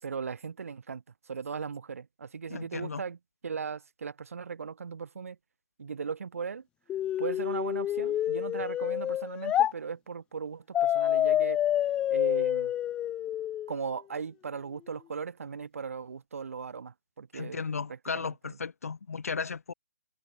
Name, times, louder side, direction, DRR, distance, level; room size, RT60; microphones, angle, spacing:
voice 1, 0.0-3.2 3.4-5.4 5.8-6.7 7.2-11.6 12.1-12.7 13.7-17.6 17.9-18.6, right 6 dB, 60° right, 6.1 m, -38 dB
voice 2, 2.5-3.0 17.3-19.7, left 5 dB, 65° left, 1.7 m, -35 dB
sound 1, 6.9-9.7 10.7-13.8, left 11 dB, 10° left, 0.6 m, -28 dB
figure-of-eight pair, 150°, 9 cm